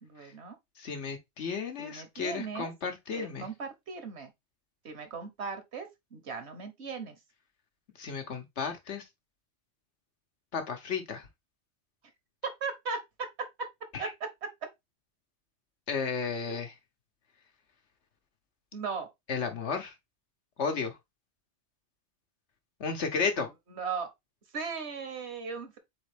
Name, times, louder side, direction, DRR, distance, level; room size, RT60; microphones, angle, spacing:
voice 1, 0.0-0.6 1.8-2.7 3.1-4.3 4.8-7.2 12.6-13.7 14.0-14.7 16.5-16.6 18.7-19.1 23.7-24.1 24.5-25.8, right 5 dB, 75° right, 1.4 m, -38 dB
voice 2, 0.8-3.5 8.0-9.0 10.5-11.3 13.9-14.1 15.9-16.7 19.3-19.9 20.6-21.0 22.8-23.5, left 5 dB, 85° left, 1.3 m, -33 dB
4.1 x 3.8 x 3.4 m
omnidirectional pair, 1.1 m